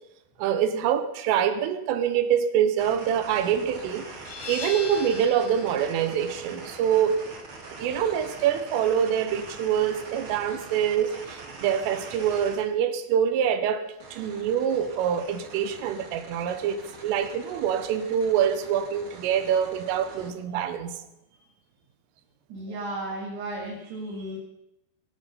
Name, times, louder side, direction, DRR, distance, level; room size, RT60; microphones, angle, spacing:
voice 1, 0.4-4.1 4.5-7.2 7.8-21.0, right 8 dB, 85° right, 3.6 m, -25 dB
sound 1, 2.8-12.6 14.0-20.3, right 3 dB, 45° right, 1.8 m, -43 dB
sound 2, 4.3-9.7, left 6 dB, 65° left, 3.9 m, -42 dB
voice 2, 22.5-24.4, right 1 dB, 60° right, 4.0 m, -34 dB
24.0 x 10.5 x 5.5 m
omnidirectional pair, 5.7 m